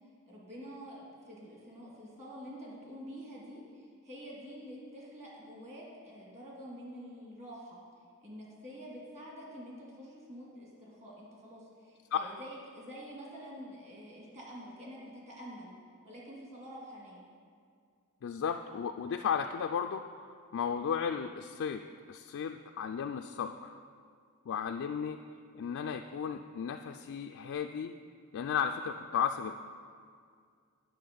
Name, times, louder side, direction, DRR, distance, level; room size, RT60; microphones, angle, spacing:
voice 1, 0.3-7.8 8.2-15.7 16.0-17.3, equal, 30° right, -4 dB, 2.1 m, -47 dB
voice 2, 18.2-21.8 22.1-23.8 24.5-25.2 25.5-27.9 28.3-29.5, left 7 dB, 60° left, 5 dB, 0.3 m, -34 dB
9.4 x 6.3 x 5.1 m, 2.1 s
head